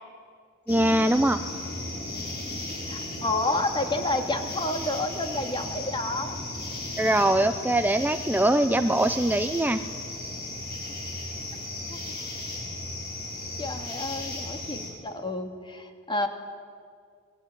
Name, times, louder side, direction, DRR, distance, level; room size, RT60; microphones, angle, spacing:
sound 1, 0.7-14.9, left 2 dB, 50° left, 7.3 m, -35 dB
voice 1, 0.7-1.4 7.0-9.8, right 1 dB, 10° right, 8 dB, 0.7 m, -22 dB
voice 2, 2.9-6.4 7.9-8.0 10.9-11.0 11.9-12.2 13.6-16.3, left 2 dB, 25° left, 5 dB, 2.5 m, -30 dB
28.5 x 21.5 x 9.4 m, 2.2 s
head